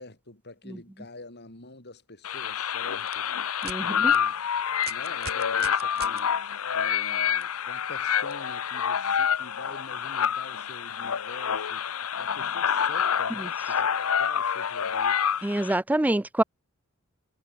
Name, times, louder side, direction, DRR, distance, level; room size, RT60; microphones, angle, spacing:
voice 1, 0.0-3.3 3.8-4.4 4.9-6.3 6.7-11.8 12.2-15.2, left 2 dB, 50° left, 7.1 m, -46 dB
sound 1, 2.2-15.8, left 8 dB, 85° left, 0.8 m, -27 dB
sound 2, 3.0-3.1 3.6-3.8 4.1-4.2 4.8-6.2 7.4-7.5 8.3-8.4, right 9 dB, 50° right, 0.9 m, -40 dB
voice 2, 3.6-4.1 13.4-13.5 15.4-16.4, right 1 dB, 5° right, 0.4 m, -26 dB
head